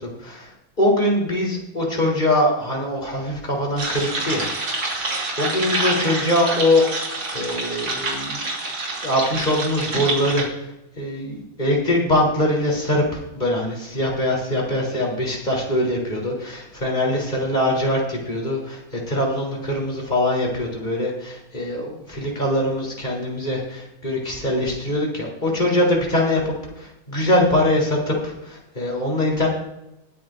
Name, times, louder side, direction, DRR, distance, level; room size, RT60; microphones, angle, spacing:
voice 1, 0.8-4.5 4.9-8.4 9.0-10.5 11.0-26.4 26.8-29.5, left 1 dB, 20° left, -2 dB, 3.8 m, -22 dB
sound 1, 3.8-10.4, right 2 dB, 70° right, 3.7 m, -27 dB
20.5 x 10.5 x 2.6 m, 0.87 s
omnidirectional pair, 2.2 m